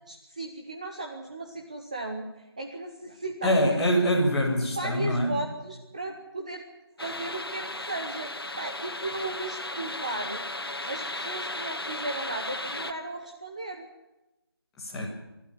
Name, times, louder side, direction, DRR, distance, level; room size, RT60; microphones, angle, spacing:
voice 1, 0.1-3.8 4.7-6.6 7.0-10.4 10.9-13.9, right 2 dB, 15° right, 1 dB, 1.0 m, -36 dB
voice 2, 3.4-5.4 14.8-15.1, equal, 5° left, -6 dB, 1.7 m, -24 dB
sound 1, 7.0-12.9, left 2 dB, 65° left, 2.2 m, -35 dB
25.5 x 12.0 x 9.8 m, 1.0 s
figure-of-eight pair, 175°, 13 cm